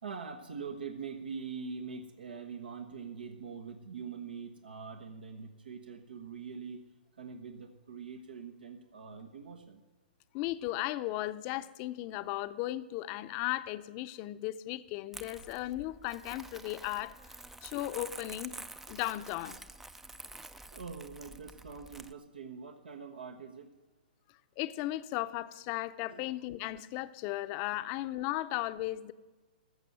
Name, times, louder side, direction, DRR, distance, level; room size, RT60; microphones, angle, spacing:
voice 1, 0.0-6.8 7.1-9.8 20.7-23.7 26.1-26.3, right 5 dB, 80° right, 4 dB, 1.2 m, -43 dB
voice 2, 10.3-17.1 17.6-18.5 18.9-19.6 24.6-29.1, left 16 dB, 35° left, 12 dB, 0.7 m, -36 dB
Crumpling crinkling, 15.1-22.1, right 2 dB, 5° right, 0.5 m, -48 dB
14.5 x 6.8 x 9.2 m, 1.2 s
hypercardioid pair, 130°, 5 cm